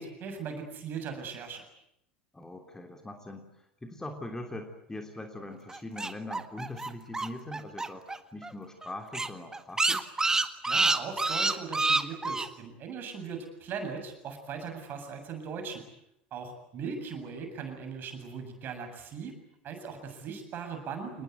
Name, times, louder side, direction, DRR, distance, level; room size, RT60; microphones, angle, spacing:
voice 1, 0.0-1.6 10.7-15.8 16.3-19.3 19.6-21.2, right 5 dB, 40° right, 6 dB, 7.5 m, -39 dB
voice 2, 2.3-8.1 8.3-10.1, left 1 dB, 10° left, 4 dB, 3.3 m, -42 dB
sound 1, 5.7-8.2 8.4-8.5 8.8-8.9 9.1-12.5, right 3 dB, 10° right, 1.8 m, -27 dB
27.5 x 21.0 x 9.4 m, 0.78 s
figure-of-eight pair, 75°, 5 cm